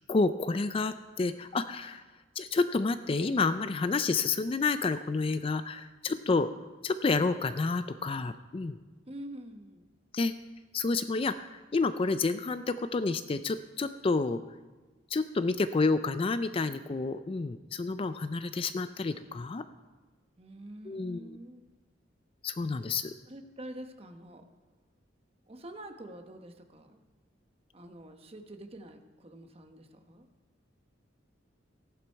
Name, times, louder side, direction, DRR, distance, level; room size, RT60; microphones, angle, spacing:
voice 1, 0.1-2.0 2.4-6.5 6.8-8.8 10.1-10.3 10.7-14.4 15.1-19.7 20.9-21.4 22.4-23.1, left 3 dB, 30° left, 12 dB, 0.4 m, -29 dB
voice 2, 9.1-9.9 20.4-21.7 23.3-24.4 25.5-27.0 27.7-30.3, right 1 dB, 30° right, 5 dB, 1.1 m, -46 dB
15.0 x 11.0 x 4.6 m, 1.3 s
head